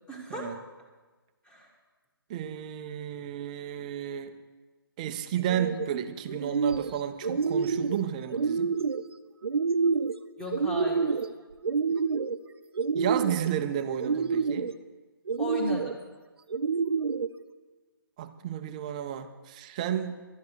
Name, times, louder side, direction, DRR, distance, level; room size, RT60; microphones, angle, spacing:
voice 1, 0.1-0.5 1.4-1.7 10.4-11.2 15.4-16.0, left 1 dB, 5° left, 0 dB, 1.5 m, -35 dB
voice 2, 2.3-4.3 5.0-8.7 12.9-14.7 18.2-20.2, right 10 dB, 20° right, 9 dB, 0.5 m, -32 dB
sound 1, 5.4-5.9 6.3-6.9 7.2-8.0 8.3-9.0 9.4-10.2 10.5-11.3 11.6-12.4 12.7-13.5 14.0-14.7 15.3-15.9 16.5-17.3, right 5 dB, 85° right, 0.6 m, -28 dB
11.5 x 9.7 x 6.2 m, 1.3 s
hypercardioid pair, 160°, 13 cm